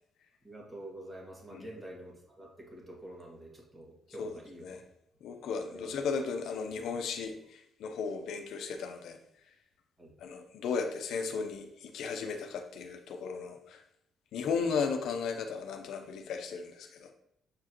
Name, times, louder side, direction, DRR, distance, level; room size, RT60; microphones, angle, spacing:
voice 1, 0.4-4.7 5.7-5.9 10.0-10.1, right 1 dB, 15° right, -2 dB, 2.0 m, -47 dB
voice 2, 4.2-4.8 5.2-9.2 10.2-13.8 14.3-17.1, left 5 dB, 75° left, 5 dB, 0.6 m, -35 dB
6.7 x 4.7 x 3.0 m, 0.77 s
cardioid pair, 90°, 0 cm